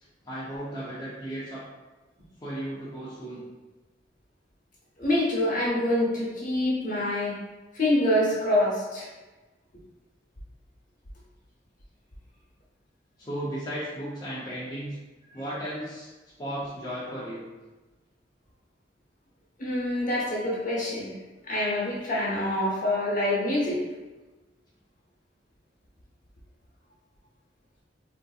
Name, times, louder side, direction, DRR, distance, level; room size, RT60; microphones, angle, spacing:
voice 1, 0.3-1.6 2.4-3.5 13.2-15.0 15.3-16.1 16.4-17.5, right 1 dB, 20° left, -9 dB, 0.5 m, -35 dB
voice 2, 5.0-7.3 7.7-9.1 19.6-21.1 21.5-23.8, left 1 dB, 45° left, -5 dB, 0.9 m, -26 dB
3.7 x 2.7 x 2.3 m, 1.2 s
head